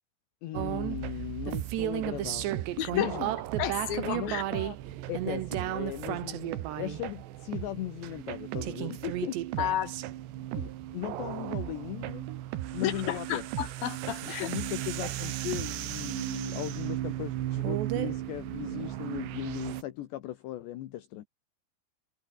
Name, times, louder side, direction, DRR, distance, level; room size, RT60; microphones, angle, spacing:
voice 1, 0.4-3.4 4.1-4.8 5.1-9.4 10.6-12.3 12.7-13.4 14.4-21.2, left 14 dB, 70° left, 3.4 m, -38 dB
sound 1, 0.5-19.8, right 14 dB, 70° right, 3.4 m, -34 dB
voice 2, 2.8-3.2 3.6-4.4 9.6-10.0 12.8-14.5, left 11 dB, 55° left, 3.8 m, -32 dB
omnidirectional pair, 5.6 m